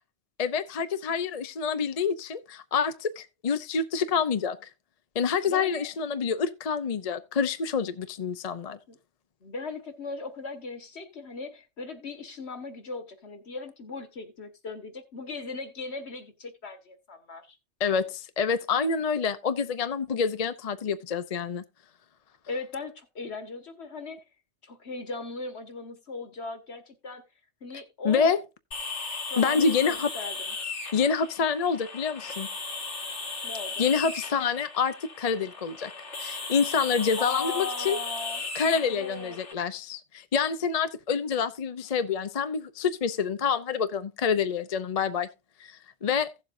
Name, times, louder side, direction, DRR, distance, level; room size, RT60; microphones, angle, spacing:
voice 1, 0.4-4.6 5.1-8.8 17.8-21.6 28.0-28.4 29.4-30.1 30.9-32.5 33.8-35.9 36.2-38.0 38.5-45.3 45.6-46.3, left 6 dB, 40° left, 0.6 m, -27 dB
voice 2, 5.5-5.9 8.9-9.0 9.4-17.6 22.5-24.2 24.6-27.2 27.6-28.3 29.3-30.5 33.4-33.9 37.2-38.4 38.8-39.4, left 3 dB, 65° left, 1.9 m, -38 dB
sound 1, 28.7-39.5, left 4 dB, 85° left, 2.8 m, -36 dB
16.0 x 7.4 x 2.6 m
omnidirectional pair, 1.2 m